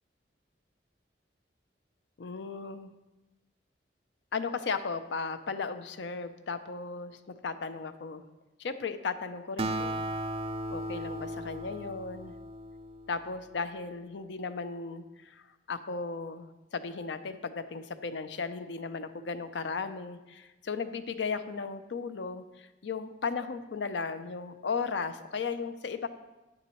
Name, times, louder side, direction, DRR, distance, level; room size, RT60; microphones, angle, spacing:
voice 1, 2.2-2.9 4.3-8.2 8.6-10.1 10.7-12.3 13.1-26.1, left 4 dB, 75° left, 11 dB, 0.5 m, -36 dB
Acoustic guitar, 9.6-13.3, right 1 dB, 30° right, 0.3 m, -36 dB
9.7 x 8.7 x 3.1 m, 1.1 s
head